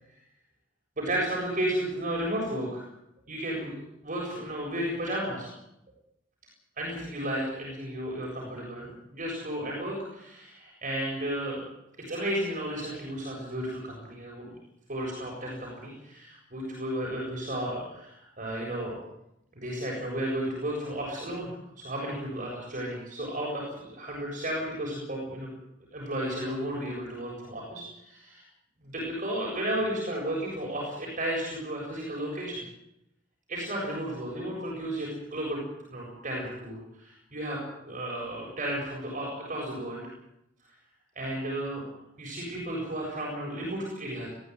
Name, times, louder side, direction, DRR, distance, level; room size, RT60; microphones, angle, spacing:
voice 1, 1.0-2.9 3.3-5.5 6.8-11.6 12.0-14.6 14.9-19.0 19.5-25.5 25.9-28.4 28.8-32.6 33.5-35.6 35.9-40.1 41.2-41.8 42.2-44.3, right 1 dB, 45° right, -3 dB, 7.5 m, -33 dB
21.5 x 15.0 x 9.6 m, 0.82 s
head